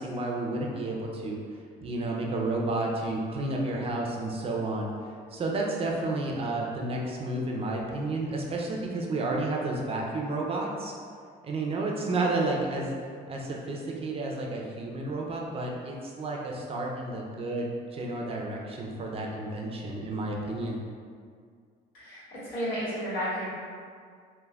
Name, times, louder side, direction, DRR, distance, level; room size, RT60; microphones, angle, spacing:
voice 1, 0.0-1.4 1.8-4.9 5.3-10.9 11.4-12.9 13.3-20.8, right 2 dB, 35° right, -1 dB, 0.4 m, -31 dB
voice 2, 21.9-23.5, equal, 90° left, -10 dB, 1.3 m, -32 dB
3.3 x 2.1 x 2.2 m, 2.1 s
cardioid pair, 110°, 17 cm